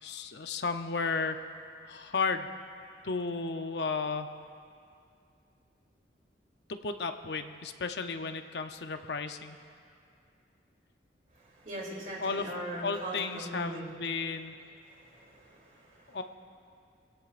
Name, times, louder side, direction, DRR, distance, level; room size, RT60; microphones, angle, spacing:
voice 1, 0.0-1.4 1.8-2.5 3.0-4.3 6.7-9.6 12.2-12.5 12.8-14.6 16.1-16.2, left 4 dB, 65° left, 7 dB, 0.7 m, -33 dB
voice 2, 11.6-13.9 14.9-16.2, right 1 dB, 45° right, -4 dB, 3.2 m, -40 dB
23.0 x 16.5 x 2.5 m, 2.5 s
head